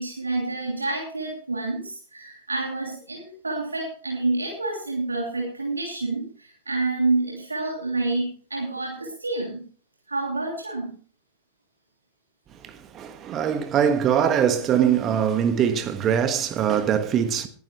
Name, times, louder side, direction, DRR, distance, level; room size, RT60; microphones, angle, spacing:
voice 1, 0.0-9.6 10.1-10.9, right 2 dB, 80° right, 3.0 m, -28 dB
voice 2, 12.6-17.5, right 8 dB, 30° right, 1.5 m, -22 dB
20.0 x 11.0 x 3.2 m
figure-of-eight pair, 90°, 0 cm